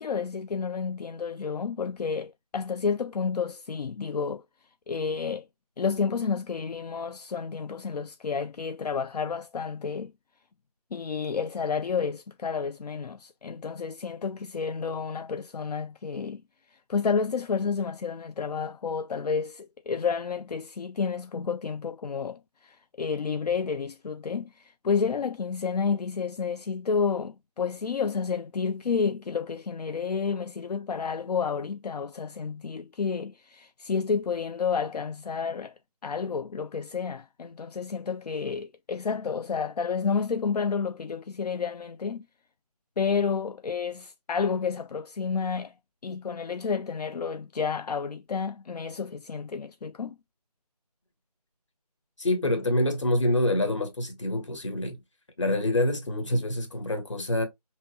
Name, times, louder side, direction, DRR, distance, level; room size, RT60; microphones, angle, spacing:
voice 1, 0.0-4.4 4.9-5.5 5.8-10.1 10.9-16.4 16.7-35.7 36.0-42.3 43.0-45.7 46.0-50.2, left 5 dB, 75° left, 0.4 m, -30 dB
voice 2, 52.2-55.0 55.4-57.5, left 1 dB, 45° left, 1.6 m, -26 dB
5.5 x 3.0 x 2.9 m
figure-of-eight pair, 175°, 21 cm